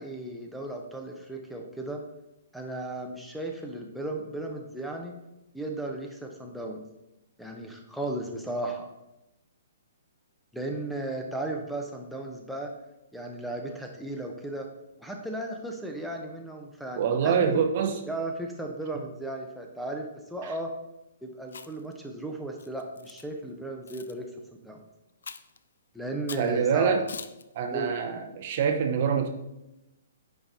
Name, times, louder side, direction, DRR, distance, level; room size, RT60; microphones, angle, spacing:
voice 1, 0.0-2.0 2.5-5.1 5.5-6.8 7.4-8.9 10.5-12.7 13.1-14.7 15.0-17.6 18.1-20.7 21.2-24.3 24.6-24.8 25.9-27.0 27.7-27.9, right 1 dB, ahead, 0 dB, 0.8 m, -35 dB
voice 2, 17.0-18.0 20.4-20.5 26.4-27.0 27.5-29.3, right 7 dB, 45° right, 5 dB, 0.8 m, -25 dB
Chewing mastication, 21.4-21.9 22.6-23.2 23.9-24.1 25.2-25.6 26.3-26.5 27.1-27.4, left 5 dB, 65° left, 0.4 m, -42 dB
9.7 x 3.4 x 4.0 m, 0.93 s
figure-of-eight pair, 120°, 0 cm